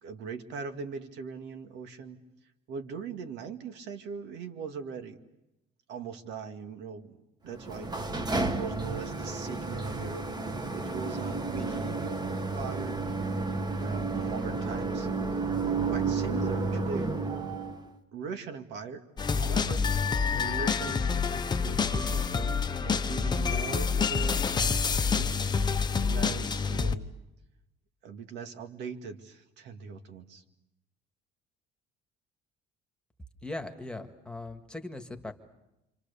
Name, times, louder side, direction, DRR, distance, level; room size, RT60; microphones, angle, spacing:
voice 1, 0.0-2.2 2.7-5.2 5.9-7.2 7.4-7.9 8.4-10.2 10.7-13.1 13.8-15.1 15.6-17.1 18.1-19.0 19.3-19.9 20.3-21.1 21.6-25.8 26.0-27.1 28.0-30.4, right 5 dB, 75° right, 7 dB, 2.1 m, -40 dB
sound 1, 7.6-17.9, right 3 dB, 20° right, 1.5 m, -31 dB
sound 2, 19.2-27.0, left 5 dB, 25° left, 0.9 m, -27 dB
voice 2, 33.4-35.3, left 2 dB, 5° left, 5 dB, 1.8 m, -39 dB
28.5 x 25.5 x 7.0 m, 0.92 s
cardioid pair, 130°, 18 cm